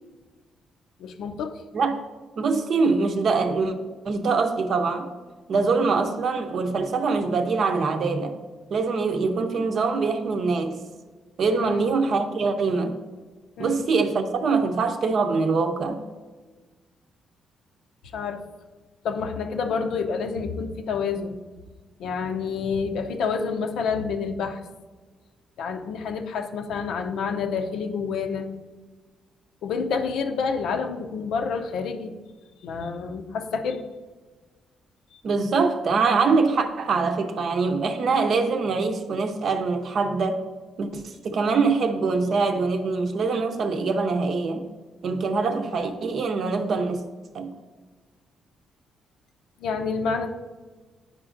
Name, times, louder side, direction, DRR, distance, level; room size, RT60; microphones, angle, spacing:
voice 1, 1.0-1.6 11.6-11.8 13.6-13.8 18.1-18.4 19.0-21.4 22.0-24.6 25.6-28.5 29.6-32.1 32.6-33.8 35.1-35.2 49.6-50.3, left 5 dB, 75° left, 0.6 m, -28 dB
voice 2, 2.4-3.8 4.0-5.1 5.5-8.4 8.7-10.8 11.4-13.0 13.6-16.0 35.2-40.4 40.8-44.7 45.0-47.0 47.3-47.5, right 4 dB, 60° right, 0.7 m, -24 dB
9.8 x 5.0 x 2.5 m
cardioid pair, 90°, 0 cm